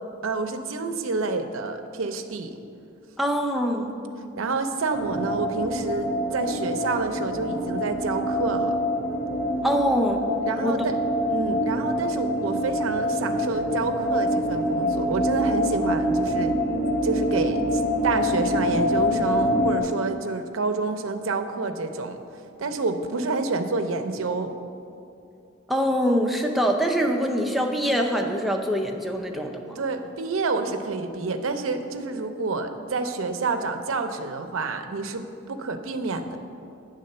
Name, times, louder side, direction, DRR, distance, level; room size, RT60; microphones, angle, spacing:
voice 1, 0.2-2.6 4.4-8.8 10.5-10.9 11.3-16.5 17.0-22.2 22.6-24.6 29.8-36.4, right 3 dB, 70° right, 7 dB, 0.5 m, -28 dB
voice 2, 3.2-3.9 9.6-10.2 10.6-10.7 25.7-29.8, equal, ahead, 1 dB, 0.5 m, -24 dB
sound 1, 4.9-19.8, equal, 50° left, 0.8 m, -25 dB
8.6 x 3.6 x 6.6 m, 2.7 s
head